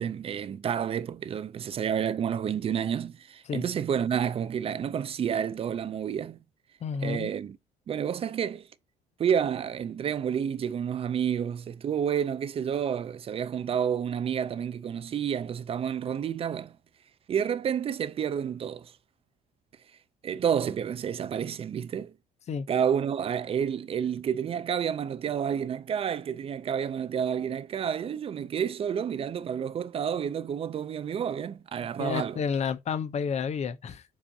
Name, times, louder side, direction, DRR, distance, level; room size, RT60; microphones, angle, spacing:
voice 1, 0.0-6.4 7.0-7.6 7.9-8.7 9.2-16.7 17.3-18.9 20.2-22.1 22.7-32.4, right 8 dB, 35° right, 0.4 m, -30 dB
voice 2, 6.8-7.3 22.5-22.7 31.8-34.0, left 6 dB, 40° left, 0.6 m, -31 dB
7.0 x 2.5 x 2.7 m
cardioid pair, 110°, 17 cm